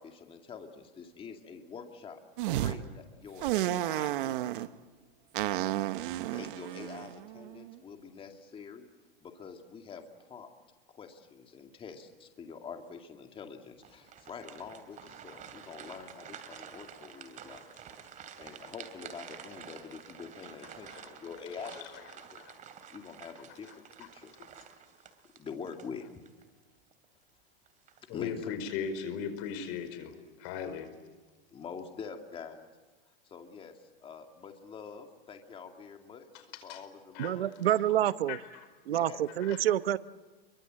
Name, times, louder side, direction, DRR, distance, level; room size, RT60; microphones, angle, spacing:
voice 1, 0.0-4.8 6.3-8.8 9.2-10.5 10.9-17.6 18.4-22.4 22.9-24.3 25.3-26.4 28.1-28.5 31.5-32.7 33.2-37.5 38.9-39.2, left 6 dB, 20° left, 5 dB, 2.3 m, -46 dB
sound 1, 2.4-2.8 3.4-4.7 5.4-7.7, right 14 dB, 65° right, 1.2 m, -32 dB
sound 2, 13.8-26.4 26.9-27.1 27.7-28.1, right 8 dB, 25° right, 2.8 m, -50 dB
voice 2, 28.1-30.9 36.7-36.8 37.1-37.3 38.3-38.6 39.4-39.6, left 7 dB, 45° left, 10 dB, 5.0 m, -38 dB
voice 3, 37.2-38.4 38.9-40.0, right 12 dB, 85° right, 15 dB, 1.0 m, -27 dB
28.5 x 24.0 x 7.7 m, 1.3 s
supercardioid pair, 140°, 29 cm